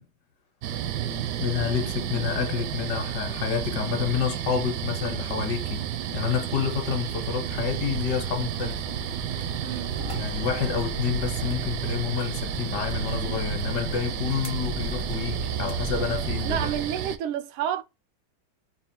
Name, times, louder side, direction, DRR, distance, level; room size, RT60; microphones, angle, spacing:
sound 1, 0.6-17.2, right 10 dB, 70° right, 1.0 m, -32 dB
voice 1, 1.1-8.8 10.1-16.7, left 7 dB, 60° left, 1.4 m, -29 dB
sound 2, 7.5-16.9, right 2 dB, 40° right, 0.3 m, -35 dB
voice 2, 9.6-9.9 16.4-17.8, right 9 dB, 90° right, 1.5 m, -29 dB
4.2 x 2.4 x 3.6 m
omnidirectional pair, 2.3 m